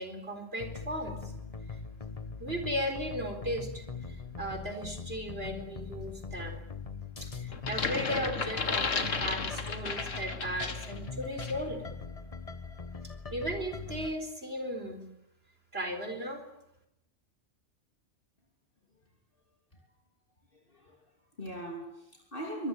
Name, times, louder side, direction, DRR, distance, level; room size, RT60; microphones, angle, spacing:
voice 1, 0.0-1.3 1.7-1.8 2.4-6.6 7.2-11.8 13.3-15.0 15.7-16.4, equal, 50° right, 5 dB, 4.4 m, -36 dB
sound 1, 0.6-14.2, left 4 dB, 30° left, 1.2 m, -41 dB
sound 2, 7.5-11.0 11.4-11.6, left 4 dB, 85° left, 2.2 m, -33 dB
voice 2, 20.5-22.7, right 1 dB, 45° left, 1 dB, 3.4 m, -41 dB
25.0 x 20.0 x 8.9 m, 0.80 s
omnidirectional pair, 1.3 m